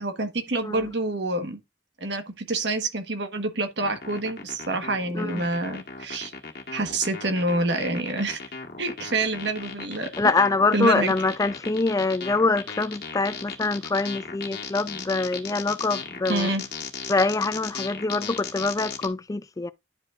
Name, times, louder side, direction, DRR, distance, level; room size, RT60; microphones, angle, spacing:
voice 1, 0.0-1.6 2.0-6.3 6.7-8.4 8.8-10.3 10.7-11.1 16.3-16.7, right 2 dB, 85° right, 1.3 m, -27 dB
sound 1, 3.8-19.1, left 5 dB, 65° left, 1.4 m, -37 dB
voice 2, 10.2-16.5 17.1-19.7, left 3 dB, 20° left, 0.4 m, -24 dB
11.0 x 5.6 x 2.5 m
head